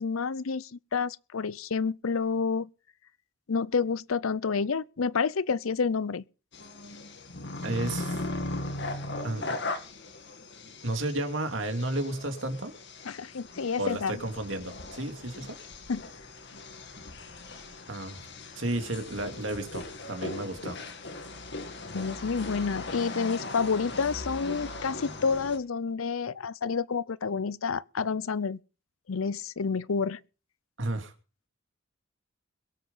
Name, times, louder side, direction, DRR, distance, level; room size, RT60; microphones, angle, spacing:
voice 1, 0.0-2.7 3.5-6.2 13.1-14.2 15.9-16.0 21.9-28.6 29.1-30.2, left 5 dB, 85° left, 0.6 m, -29 dB
sound 1, 6.5-25.6, left 2 dB, 55° left, 2.3 m, -39 dB
voice 2, 7.6-8.3 9.2-9.5 10.8-12.8 13.8-15.6 17.9-18.3 18.6-20.8 30.8-31.1, right 1 dB, 65° right, 2.6 m, -32 dB
22.0 x 7.9 x 5.5 m
head